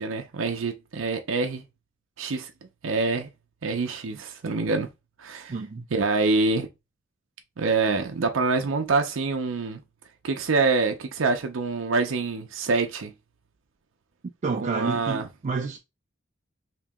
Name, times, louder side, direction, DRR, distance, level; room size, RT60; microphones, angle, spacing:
voice 1, 0.0-1.6 2.2-2.5 2.8-3.3 3.6-4.9 5.2-5.5 5.9-6.7 7.6-9.8 10.2-13.1 14.6-15.3, right 3 dB, 80° right, 0.6 m, -25 dB
voice 2, 5.5-5.9 14.4-15.8, right 4 dB, 40° right, 0.4 m, -29 dB
3.0 x 2.8 x 3.5 m
head